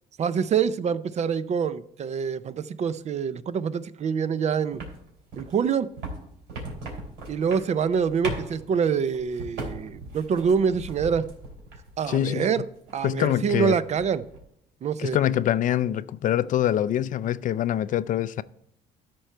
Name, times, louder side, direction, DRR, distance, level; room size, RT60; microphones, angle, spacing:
voice 1, 0.2-4.8 5.4-5.9 7.3-11.2 12.0-12.6 12.9-14.2 14.8-15.2, right 6 dB, 40° right, 0.5 m, -25 dB
sound 1, 4.7-12.3 12.6-13.5 13.7-14.4, right 2 dB, 90° right, 3.9 m, -38 dB
voice 2, 12.1-12.5 13.0-13.8 15.0-18.4, left 11 dB, 50° left, 0.4 m, -24 dB
13.0 x 4.5 x 4.4 m
cardioid pair, 110°, 17 cm